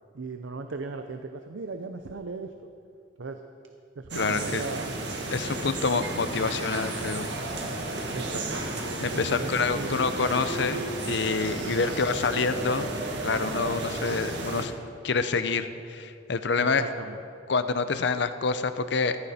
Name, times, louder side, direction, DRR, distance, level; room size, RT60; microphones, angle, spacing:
voice 1, 0.1-2.7 3.2-3.4 4.0-4.9 8.1-10.0 11.6-12.0 16.6-17.2, right 3 dB, 80° right, 7 dB, 0.6 m, -37 dB
voice 2, 4.1-4.6 5.3-7.3 9.0-12.9 13.2-14.7 15.0-16.8 17.5-19.2, left 4 dB, 65° left, 11 dB, 0.7 m, -27 dB
sound 1, 4.1-14.7, right 2 dB, 65° right, 1.8 m, -33 dB
14.5 x 14.5 x 4.3 m, 2.5 s
head